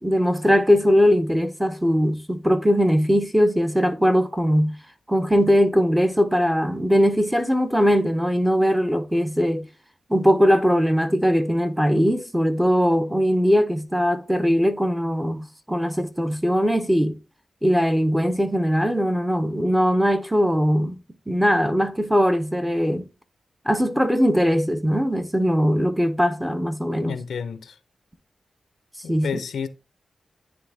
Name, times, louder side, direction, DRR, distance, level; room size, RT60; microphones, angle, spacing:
voice 1, 0.0-4.8 5.1-9.7 10.1-17.2 17.6-23.1 23.7-27.2 29.1-29.4, equal, 5° right, 0.7 m, -20 dB
voice 2, 27.0-27.7 29.0-29.7, left 6 dB, 90° left, 0.6 m, -30 dB
9.7 x 3.3 x 3.5 m
wide cardioid pair, 130°, 0 cm